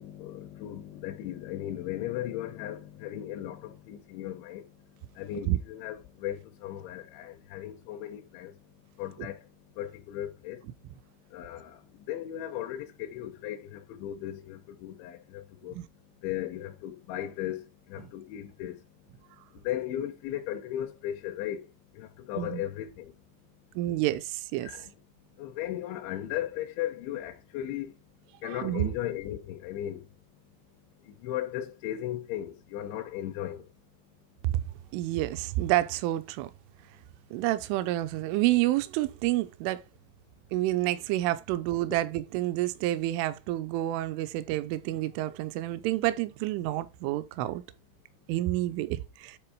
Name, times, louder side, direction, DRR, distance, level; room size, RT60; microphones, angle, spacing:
voice 1, 0.0-23.7 24.6-24.9 25.4-30.2 30.7-30.8 31.0-33.7, left 12 dB, 80° left, 3.0 m, -37 dB
voice 2, 23.8-24.7 28.5-28.9 34.4-34.6 34.9-36.5 37.3-39.8 40.5-47.6 48.3-49.4, right 16 dB, 85° right, 3.1 m, -29 dB
10.0 x 3.9 x 4.7 m
omnidirectional pair, 5.6 m